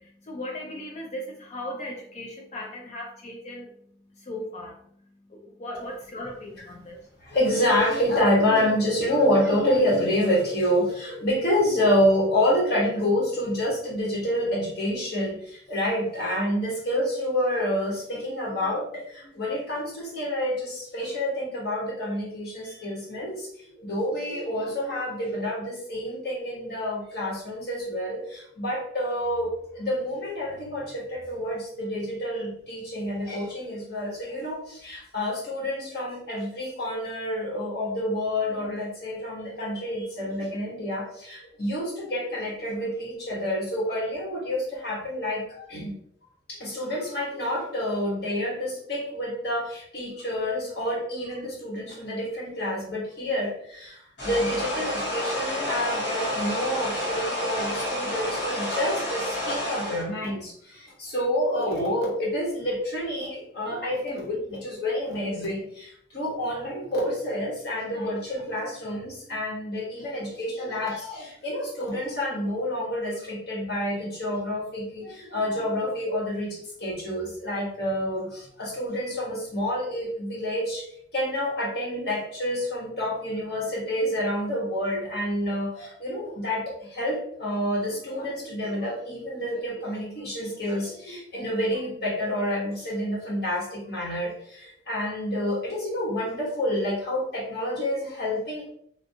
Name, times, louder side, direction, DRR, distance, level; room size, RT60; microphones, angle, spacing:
voice 1, 0.0-7.1, left 1 dB, 40° left, 1 dB, 0.4 m, -38 dB
voice 2, 7.2-23.5 23.8-46.0 46.5-80.8 81.1-98.7, left 1 dB, 60° left, -4 dB, 1.3 m, -28 dB
sound 1, 54.2-60.0, left 1 dB, 90° left, 1.2 m, -29 dB
3.4 x 2.5 x 2.7 m, 0.67 s
head